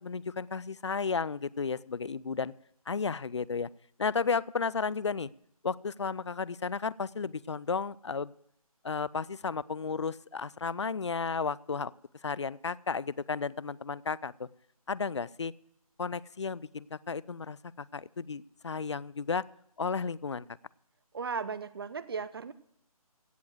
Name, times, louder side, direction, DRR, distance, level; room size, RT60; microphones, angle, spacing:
voice 1, 0.0-2.5 2.9-3.7 4.0-5.3 5.6-8.3 8.8-11.9 12.2-14.5 14.9-15.5 16.0-19.4 19.8-20.5, left 5 dB, 50° left, 22 dB, 0.4 m, -33 dB
voice 2, 21.1-22.5, right 5 dB, 40° right, 17 dB, 0.8 m, -36 dB
16.5 x 7.1 x 7.7 m, 0.74 s
figure-of-eight pair, 155°, 19 cm